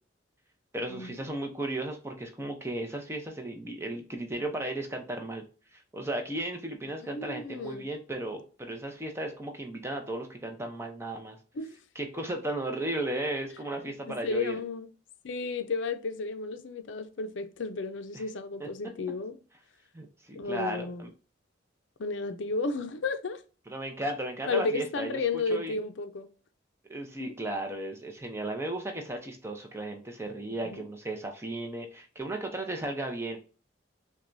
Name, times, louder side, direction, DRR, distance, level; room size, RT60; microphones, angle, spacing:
voice 1, 0.7-5.4 5.7-11.4 11.9-14.6 18.1-18.2 18.6-18.7 19.9-21.1 23.7-25.2 25.5-25.8 26.9-33.4, right 1 dB, 15° right, 0.7 m, -35 dB
voice 2, 7.1-7.8 11.5-11.8 13.8-14.9 15.2-19.4 20.3-21.1 22.0-23.4 24.5-26.3 27.2-27.3 30.7-30.8, left 3 dB, 90° left, 0.5 m, -33 dB
5.9 x 2.3 x 2.6 m
head